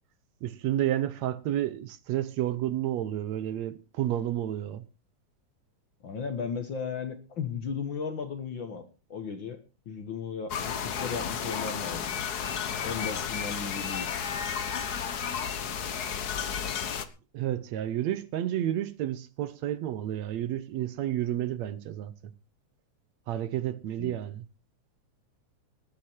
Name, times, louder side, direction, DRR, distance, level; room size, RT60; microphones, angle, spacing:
voice 1, 0.4-4.8 17.3-22.3 23.3-24.4, right 12 dB, 70° right, 2.0 m, -31 dB
voice 2, 6.0-8.8 9.1-9.6 9.9-12.1 12.8-14.2 24.0-24.2, left 5 dB, 50° left, 1.7 m, -35 dB
sound 1, 10.5-17.0, left 7 dB, 75° left, 0.8 m, -32 dB
19.0 x 9.9 x 4.5 m
omnidirectional pair, 3.4 m